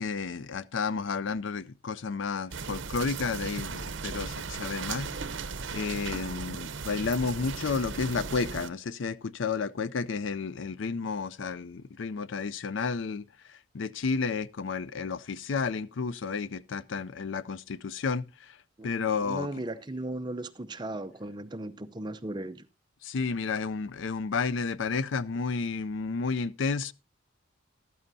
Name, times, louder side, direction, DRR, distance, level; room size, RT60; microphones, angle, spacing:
voice 1, 0.0-5.1 5.7-18.6 18.8-19.5 23.0-26.9, left 4 dB, 70° left, 0.5 m, -31 dB
sound 1, 2.5-8.7, right 5 dB, 65° right, 0.7 m, -37 dB
voice 2, 19.2-22.7, right 1 dB, 20° right, 0.6 m, -36 dB
14.0 x 12.5 x 2.7 m
head